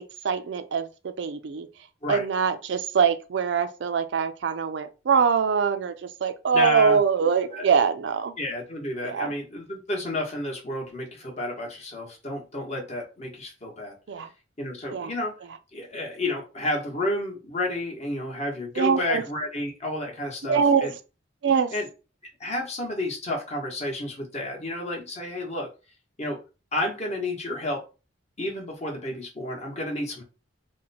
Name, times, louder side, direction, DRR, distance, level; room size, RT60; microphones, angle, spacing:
voice 1, 0.0-1.7 2.1-8.4 9.0-9.3 14.1-14.3 14.9-15.1 18.8-19.2 20.5-20.9 21.4-21.7, right 6 dB, 65° right, 0.4 m, -23 dB
voice 2, 6.5-7.0 7.5-7.7 8.4-13.9 14.6-15.3 15.7-20.9 21.7-21.9 22.4-25.7 26.2-26.4 26.7-27.8 28.4-30.2, left 1 dB, 35° left, 1.1 m, -31 dB
2.9 x 2.1 x 4.0 m
head